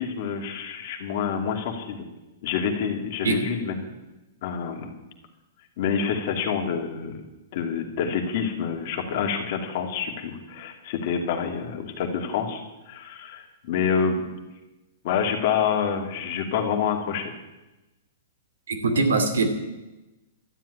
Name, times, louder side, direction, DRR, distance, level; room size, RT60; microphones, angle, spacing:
voice 1, 0.0-2.0 2.4-3.9 4.4-4.9 5.8-7.2 7.5-14.3 15.0-17.3, left 7 dB, 50° left, 3 dB, 2.6 m, -27 dB
voice 2, 18.7-19.5, right 3 dB, 85° right, 6 dB, 2.5 m, -22 dB
12.5 x 7.7 x 9.9 m, 1.0 s
hypercardioid pair, 140°, 0 cm